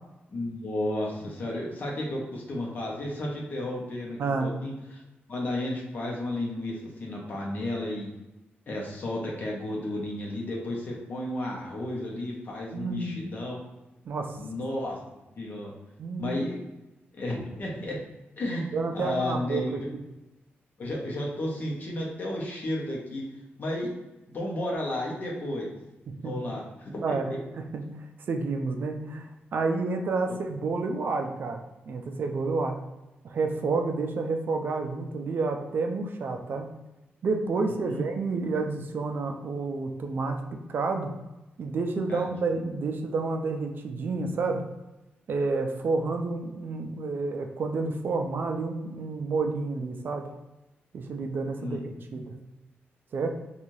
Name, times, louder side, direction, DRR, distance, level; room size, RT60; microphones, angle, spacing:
voice 1, 0.3-5.0 5.3-8.1 8.7-13.6 14.4-15.0 15.4-15.7 16.2-16.6 17.1-18.0 18.4-18.7 18.9-19.8 20.8-23.2 23.6-24.0 24.3-25.7 26.2-27.2 37.7-38.1 42.1-42.2 51.6-51.8 52.1-52.2, left 1 dB, 45° left, -2 dB, 0.7 m, -33 dB
voice 2, 4.2-4.5 12.7-13.2 14.1-14.4 16.0-16.4 18.7-19.8 26.2-26.4 27.0-27.3 27.6-32.8 33.2-36.7 37.2-41.1 41.6-44.6 45.3-50.3 50.9-52.4 53.1-53.3, right 3 dB, 55° right, 4 dB, 0.3 m, -30 dB
3.1 x 2.3 x 2.6 m, 1.0 s
wide cardioid pair, 170°, 4 cm